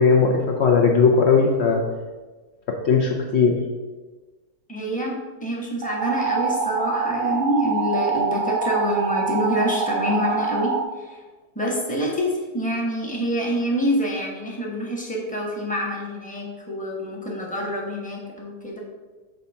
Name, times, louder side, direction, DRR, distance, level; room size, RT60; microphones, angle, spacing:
voice 1, 0.0-1.8 2.8-3.6, left 5 dB, 90° left, 0 dB, 0.5 m, -18 dB
voice 2, 4.7-11.2 11.5-18.8, equal, 5° left, -3 dB, 0.9 m, -26 dB
sound 1, 5.8-10.8, right 5 dB, 65° right, 1.0 m, -25 dB
7.8 x 2.8 x 5.5 m, 1.3 s
omnidirectional pair, 2.1 m